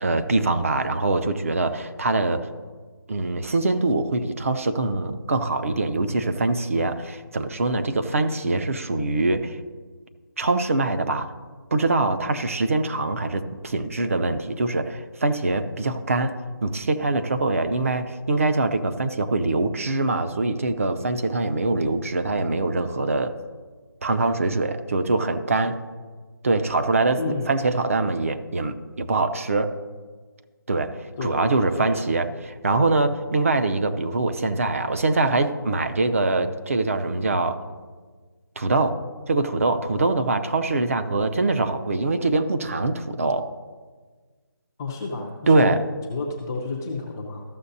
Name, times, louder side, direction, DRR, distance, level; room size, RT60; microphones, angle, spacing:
voice 1, 0.0-2.5 3.1-9.6 10.4-11.3 11.7-23.4 24.0-25.8 26.4-29.8 30.7-37.6 38.6-39.0 39.3-43.5 45.5-45.8, right 2 dB, 40° right, 9 dB, 0.6 m, -23 dB
voice 2, 27.2-27.5 31.2-31.5 31.8-32.0 44.8-45.8 46.1-47.4, left 3 dB, 10° left, -3 dB, 0.4 m, -30 dB
14.0 x 6.3 x 2.7 m, 1.4 s
figure-of-eight pair, 160°, 12 cm